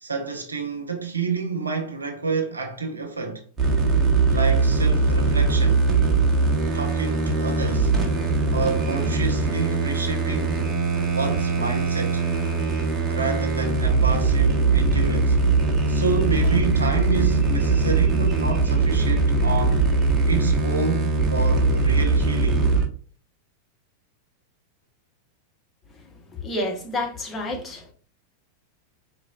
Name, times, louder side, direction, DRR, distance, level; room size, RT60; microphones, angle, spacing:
voice 1, 0.0-3.4 4.2-5.8 6.7-7.9 8.5-10.6 11.1-12.2 13.1-15.4 15.9-19.9 20.3-22.7, right 4 dB, 75° right, 0.6 m, -29 dB
sound 1, 3.6-22.9, right 3 dB, 20° right, 1.1 m, -21 dB
sound 2, 14.3-14.8 16.3-16.8 19.3-20.0, right 1 dB, 55° right, 1.1 m, -35 dB
voice 2, 26.4-27.9, left 1 dB, 20° left, 1.1 m, -29 dB
4.4 x 3.0 x 2.4 m
figure-of-eight pair, 90°, 0 cm